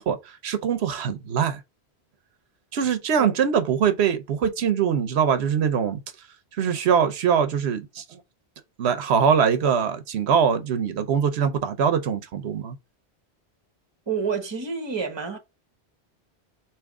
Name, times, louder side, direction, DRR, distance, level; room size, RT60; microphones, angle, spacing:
voice 1, 0.0-1.6 2.7-6.0 6.6-8.0 8.8-12.8, right 7 dB, 85° right, 0.9 m, -23 dB
voice 2, 14.1-15.4, right 5 dB, 25° right, 1.0 m, -28 dB
3.5 x 3.0 x 4.7 m
omnidirectional pair, 1.1 m